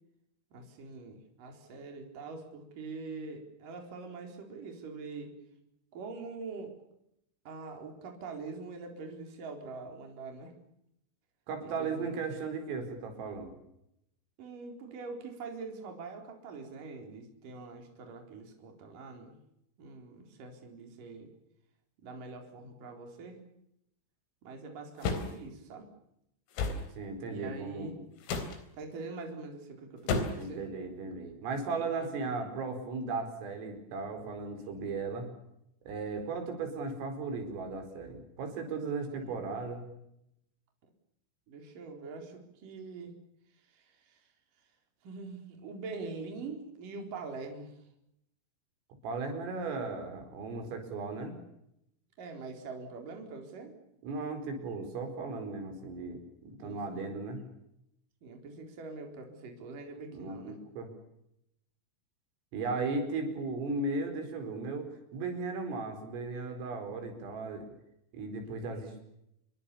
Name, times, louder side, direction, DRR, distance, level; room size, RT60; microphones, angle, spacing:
voice 1, 0.5-5.4 5.9-6.8 7.5-10.6 11.6-12.2 14.4-19.4 19.8-21.3 22.0-23.4 24.4-25.9 27.3-28.0 28.7-30.7 31.8-32.1 39.1-39.5 41.5-43.1 43.7-44.3 45.0-47.8 52.2-53.7 56.6-57.1 58.2-60.6, right 4 dB, 45° right, 3 dB, 5.5 m, -44 dB
voice 2, 11.5-13.5 27.0-28.0 30.4-35.3 35.9-39.8 49.0-51.3 54.0-57.4 60.1-60.9 62.5-67.7 68.1-69.0, right 3 dB, 80° right, 6 dB, 7.3 m, -36 dB
sound 1, 25.0-25.3 26.6-26.8 28.2-28.6 30.1-30.5, left 4 dB, 85° left, 6.2 m, -31 dB
29.5 x 22.5 x 7.1 m, 0.79 s
omnidirectional pair, 5.9 m